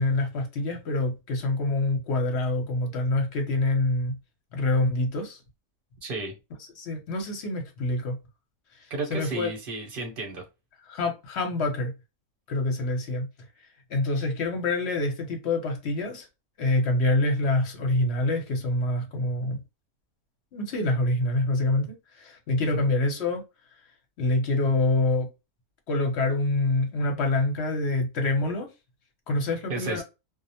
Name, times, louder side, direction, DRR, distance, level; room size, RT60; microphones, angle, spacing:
voice 1, 0.0-4.1 4.5-5.4 6.8-8.2 9.1-9.5 10.9-11.9 12.5-13.3 13.9-16.3 16.6-19.6 20.5-21.9 22.2-23.4 24.2-25.3 25.9-28.7 29.3-30.0, left 2 dB, 55° left, 0.9 m, -26 dB
voice 2, 6.0-6.3 8.9-10.4 22.7-22.8 29.7-30.0, right 3 dB, 45° right, 0.9 m, -32 dB
2.4 x 2.0 x 2.7 m
omnidirectional pair, 1.5 m